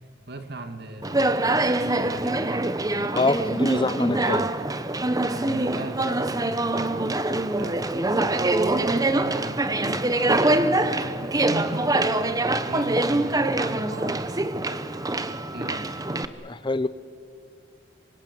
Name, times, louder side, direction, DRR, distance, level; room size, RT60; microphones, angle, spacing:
voice 1, 0.3-2.8 5.3-9.6 10.1-14.5 15.5-15.9, right 2 dB, 55° right, 7 dB, 2.2 m, -38 dB
Conversation, 1.0-16.2, right 2 dB, 20° right, 0.9 m, -24 dB
voice 2, 3.2-4.5 16.4-16.9, left 2 dB, 25° left, 13 dB, 0.6 m, -25 dB
26.5 x 24.5 x 8.7 m, 2.3 s
head